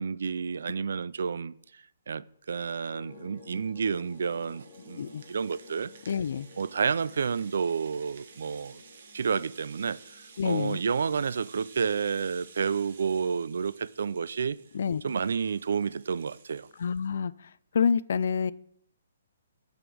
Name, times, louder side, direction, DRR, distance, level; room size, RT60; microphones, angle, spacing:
voice 1, 0.0-5.9 6.6-8.8 9.1-14.6 15.0-16.7, right 6 dB, 60° right, 0.3 m, -30 dB
sound 1, 2.9-16.9, left 3 dB, 20° left, 1.6 m, -55 dB
Rattle (instrument), 3.0-17.1, right 5 dB, 45° right, 1.2 m, -54 dB
voice 2, 6.1-6.5 10.4-10.8 14.7-15.0 16.8-17.3 17.7-18.5, left 6 dB, 50° left, 0.3 m, -27 dB
7.0 x 6.7 x 6.2 m
hypercardioid pair, 180°, 0 cm